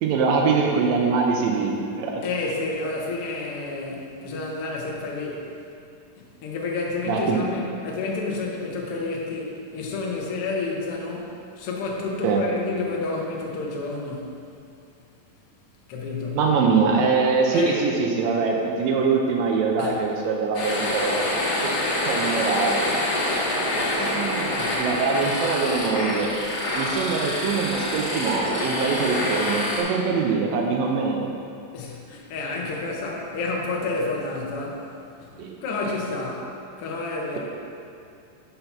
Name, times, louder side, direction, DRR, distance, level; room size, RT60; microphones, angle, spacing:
voice 1, 0.0-2.2 7.1-7.4 12.2-12.4 16.3-21.2 21.6-21.7 22.0-22.8 24.0-26.3 26.7-31.3 35.4-35.6 37.3-37.4, right 4 dB, 85° right, 0 dB, 1.6 m, -23 dB
voice 2, 2.2-5.4 6.4-14.3 15.9-16.4 17.5-17.8 19.8-20.0 21.2-21.3 24.6-24.8 31.7-34.8 35.2-35.3 35.6-36.5 36.8-37.4, left 3 dB, 75° left, -2 dB, 1.3 m, -30 dB
sound 1, 20.5-29.8, left 1 dB, 60° left, 1.4 m, -26 dB
5.7 x 5.6 x 5.8 m, 2.5 s
omnidirectional pair, 4.0 m